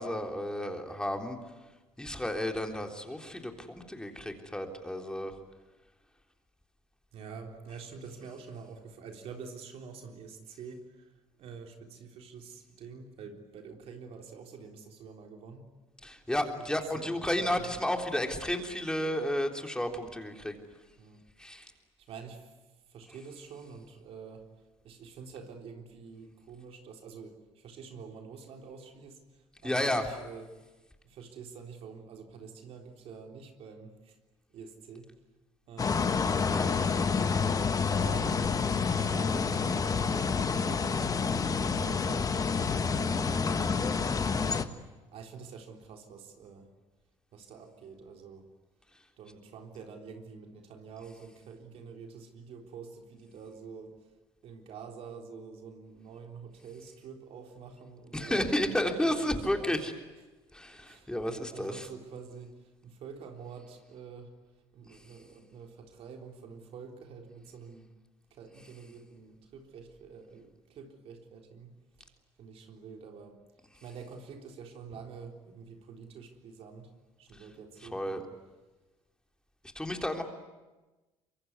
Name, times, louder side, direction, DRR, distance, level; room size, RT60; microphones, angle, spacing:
voice 1, 0.0-1.4 2.0-5.3 16.0-20.6 21.4-21.7 29.6-30.1 36.4-36.7 58.1-59.9 60.5-61.9 64.9-65.0 77.3-77.4 77.8-78.2 79.7-80.2, left 1 dB, 5° left, 3 dB, 3.6 m, -32 dB
voice 2, 7.1-11.1 11.4-15.7 16.5-17.7 21.0-21.2 21.6-22.6 22.9-24.5 24.8-30.5 31.0-34.2 34.5-35.1 35.7-36.3 37.1-44.6 45.1-46.7 47.3-48.5 49.2-54.0 54.4-59.8 60.8-64.4 64.7-67.9 68.3-73.4 73.8-76.9 77.2-78.2, right 5 dB, 60° right, 3 dB, 3.7 m, -47 dB
sound 1, 35.8-44.6, left 5 dB, 30° left, 1.5 m, -28 dB
24.5 x 23.0 x 9.7 m, 1.1 s
supercardioid pair, 70°, 11 cm